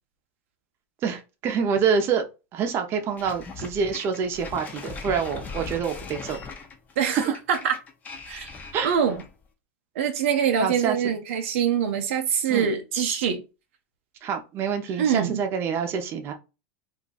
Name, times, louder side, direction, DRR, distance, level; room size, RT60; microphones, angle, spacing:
voice 1, 1.0-2.2 2.5-6.4 7.1-7.2 8.7-9.0 10.6-11.0 12.5-12.7 14.2-16.3, right 6 dB, 35° right, 0.7 m, -26 dB
sound 1, 3.2-9.4, left 4 dB, 25° left, 0.7 m, -39 dB
voice 2, 7.0-7.8 8.3-8.5 8.8-9.2 9.9-13.4 15.0-15.4, right 8 dB, 75° right, 0.6 m, -24 dB
2.6 x 2.3 x 4.0 m
supercardioid pair, 120°, 7 cm